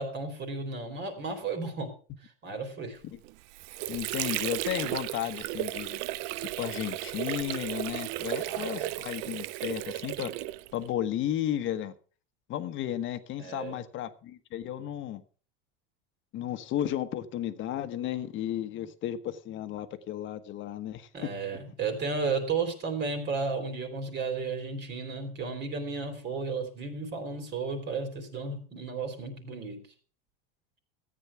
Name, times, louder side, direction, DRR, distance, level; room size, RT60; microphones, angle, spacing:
voice 1, 0.0-1.9 2.4-3.0 8.4-8.9 13.4-13.8 21.1-29.8, right 4 dB, 35° right, 6 dB, 3.5 m, -33 dB
Water / Sink (filling or washing), 3.2-10.9, right 16 dB, 55° right, 0.6 m, -34 dB
voice 2, 3.9-6.0 6.6-10.3 10.7-11.9 12.5-15.2 16.3-21.3, left 11 dB, 40° left, 10 dB, 1.3 m, -34 dB
13.5 x 9.1 x 5.8 m, 0.40 s
supercardioid pair, 125°, 29 cm